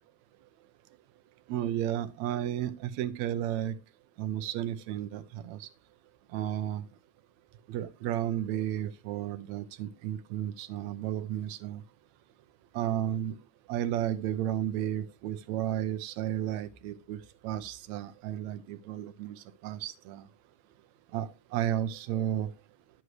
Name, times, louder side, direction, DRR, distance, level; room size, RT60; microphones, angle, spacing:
voice 1, 1.5-3.8 4.2-5.7 6.3-6.9 7.7-11.8 12.7-13.4 13.7-20.3 21.1-22.5, right 11 dB, 75° right, 13 dB, 1.9 m, -33 dB
11.0 x 8.0 x 3.2 m, 0.28 s
omnidirectional pair, 3.4 m